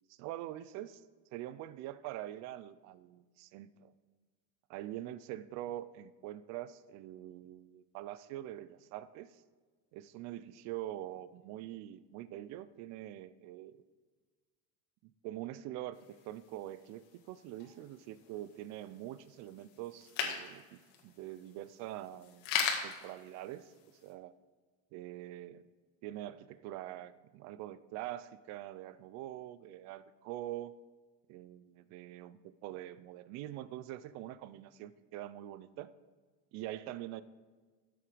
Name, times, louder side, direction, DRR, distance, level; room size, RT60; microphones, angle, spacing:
voice 1, 0.1-1.0 1.3-3.9 4.7-9.4 9.9-13.8 15.0-16.0 16.2-24.3 24.9-25.6 26.0-30.7 31.3-35.9 36.5-37.2, right 13 dB, 55° right, 16 dB, 0.6 m, -44 dB
sound 1, 15.9-24.1, left 7 dB, 90° left, 2.0 m, -41 dB
13.5 x 7.8 x 5.1 m, 1.4 s
cardioid pair, 165°, 32 cm